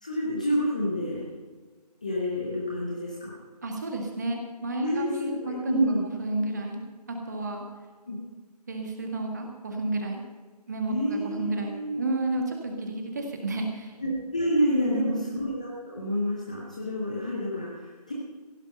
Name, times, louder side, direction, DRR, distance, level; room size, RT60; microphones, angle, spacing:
voice 1, 0.0-1.3 2.0-3.3 4.8-6.0 8.1-8.2 10.9-12.1 14.0-18.1, equal, 10° left, -4 dB, 0.7 m, -28 dB
voice 2, 3.6-6.8 7.1-7.6 8.7-10.2 10.7-14.0 14.8-15.3, right 2 dB, 25° right, 2 dB, 1.8 m, -31 dB
16.0 x 11.0 x 5.5 m, 1.4 s
figure-of-eight pair, 165°, 21 cm